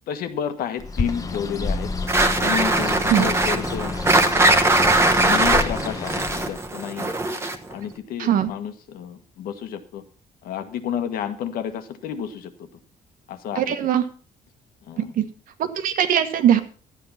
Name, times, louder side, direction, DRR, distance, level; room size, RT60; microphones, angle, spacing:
voice 1, 0.1-1.9 2.4-4.0 4.3-7.1 7.7-10.0 10.4-12.7 13.3-13.8 14.8-15.1, left 8 dB, 80° left, 9 dB, 1.5 m, -31 dB
Bird, 0.8-6.7, left 3 dB, 25° left, 1.0 m, -30 dB
sound 1, 2.1-7.7, right 2 dB, 15° right, 1.1 m, -20 dB
voice 2, 8.2-8.5 13.6-14.0 15.0-15.2 15.6-16.6, right 10 dB, 70° right, 10 dB, 1.4 m, -20 dB
12.0 x 8.6 x 5.7 m, 0.40 s
cardioid pair, 140°, 15 cm